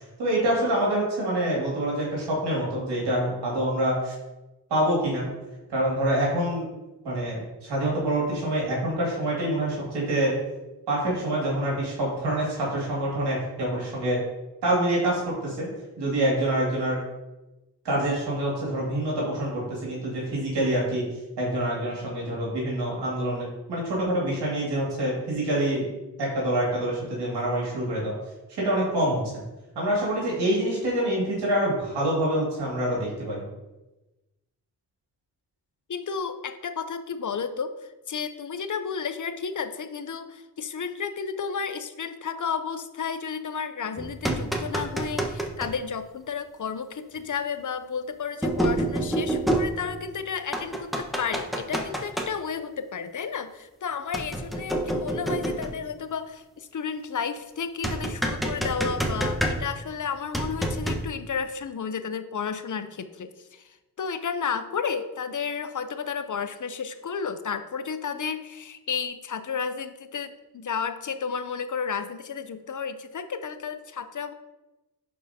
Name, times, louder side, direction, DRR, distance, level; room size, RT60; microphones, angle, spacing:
voice 1, 0.2-4.1 4.7-5.3 5.7-6.6 7.0-10.3 10.9-14.2 14.6-15.7 16.0-17.0 17.8-21.0 21.4-25.8 26.2-28.1 28.6-29.2 29.8-33.4, right 1 dB, 90° right, -4 dB, 2.4 m, -26 dB
voice 2, 35.9-74.3, left 6 dB, 50° left, 10 dB, 0.7 m, -32 dB
sound 1, 44.0-45.7 47.2-47.3 48.4-50.1 50.5-52.3 54.1-55.9 57.8-59.9 60.3-61.1, right 1 dB, ahead, 1.2 m, -28 dB
11.0 x 4.6 x 2.8 m, 1.0 s
supercardioid pair, 40°, 39 cm